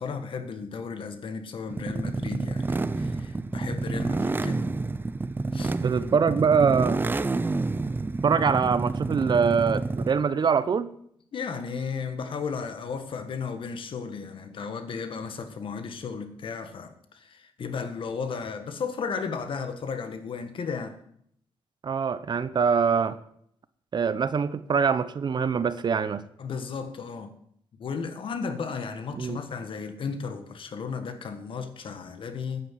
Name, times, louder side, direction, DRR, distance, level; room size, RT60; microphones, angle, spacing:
voice 1, 0.0-4.7 5.5-5.7 11.3-21.0 26.4-27.3 27.8-32.7, left 5 dB, 65° left, 8 dB, 1.8 m, -34 dB
sound 1, 1.7-10.3, right 3 dB, 20° right, 0.6 m, -29 dB
voice 2, 5.8-7.0 8.2-10.9 21.8-23.2 23.9-26.2 29.1-29.4, right 6 dB, 50° right, 15 dB, 0.8 m, -24 dB
10.5 x 9.8 x 7.6 m, 0.68 s
cardioid pair, 95°, 10 cm